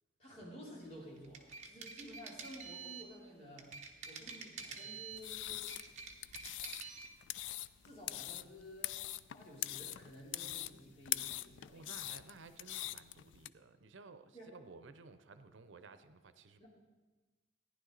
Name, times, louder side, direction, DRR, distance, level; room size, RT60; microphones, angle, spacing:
voice 1, 0.2-5.7 7.8-9.0 9.3-11.9 14.3-14.5 16.6-16.7, equal, 35° left, -5 dB, 3.5 m, -53 dB
sound 1, 1.2-3.1 3.6-5.3 5.6-7.1, right 5 dB, 40° right, 1.0 m, -48 dB
sound 2, 5.1-13.5, left 14 dB, 80° left, 0.3 m, -43 dB
voice 2, 11.7-16.6, right 4 dB, 85° right, 11 dB, 0.7 m, -56 dB
15.0 x 10.5 x 4.0 m, 1.2 s
head